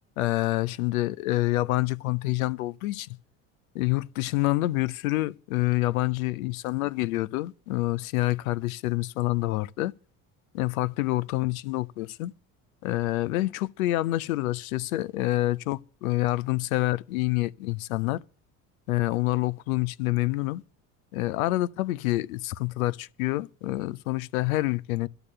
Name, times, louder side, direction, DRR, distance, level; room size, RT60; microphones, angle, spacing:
voice 1, 0.2-3.1 3.7-9.9 10.5-12.3 12.8-18.2 18.9-20.6 21.1-25.1, left 18 dB, 85° left, 0.7 m, -27 dB
12.5 x 6.9 x 9.9 m
supercardioid pair, 85°, 40 cm